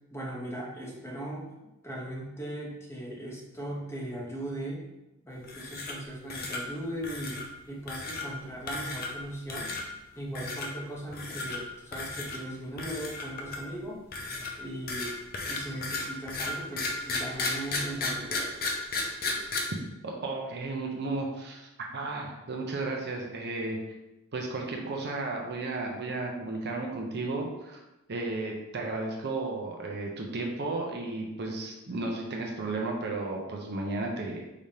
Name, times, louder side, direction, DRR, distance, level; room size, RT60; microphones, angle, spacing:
voice 1, 0.1-1.5 1.8-4.8 5.2-7.4 7.7-9.8 10.1-14.1 14.5-15.2 15.5-18.6, right 1 dB, 10° left, -3 dB, 0.8 m, -38 dB
sound 1, 5.4-6.0 6.3-6.6 7.0-7.5 7.9-8.3 8.7-9.2 9.5-9.8 10.3-10.7 11.1-11.6 11.9-12.4 12.8-13.7 14.1-19.6, left 3 dB, 45° left, 0.6 m, -34 dB
voice 2, 20.0-23.8 24.3-27.8 28.1-34.4, right 2 dB, 50° right, 1 dB, 0.6 m, -34 dB
4.9 x 3.4 x 2.8 m, 0.97 s
head